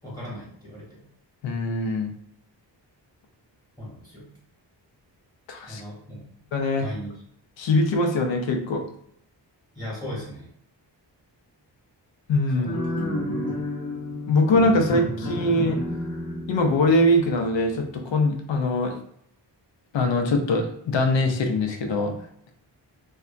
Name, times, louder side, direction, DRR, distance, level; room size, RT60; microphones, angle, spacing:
voice 1, 0.0-1.0 3.8-4.3 5.7-6.2 6.8-7.1 9.7-10.5 12.5-12.8, equal, 10° left, -6 dB, 1.0 m, -37 dB
voice 2, 1.4-2.1 5.5-5.8 6.5-6.9 7.6-8.8 12.3-12.7 14.3-15.8 16.5-19.0 19.9-22.2, left 1 dB, 80° left, 4 dB, 0.6 m, -22 dB
sound 1, 12.6-18.0, left 1 dB, 35° left, 0.7 m, -31 dB
2.7 x 2.2 x 2.4 m, 0.69 s
wide cardioid pair, 120°, 44 cm